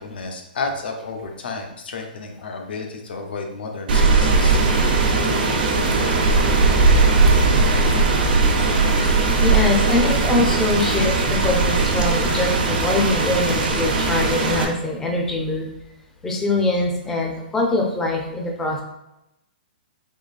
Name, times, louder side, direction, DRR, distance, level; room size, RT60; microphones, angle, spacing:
voice 1, 0.0-4.6, left 4 dB, 75° left, 3 dB, 0.7 m, -31 dB
Rain, 3.9-14.6, right 3 dB, 65° right, 0.8 m, -18 dB
voice 2, 9.4-11.2 11.4-15.7 16.2-18.8, left 2 dB, 5° left, 0 dB, 0.4 m, -23 dB
3.7 x 3.5 x 2.4 m, 0.90 s
hypercardioid pair, 170°, 5 cm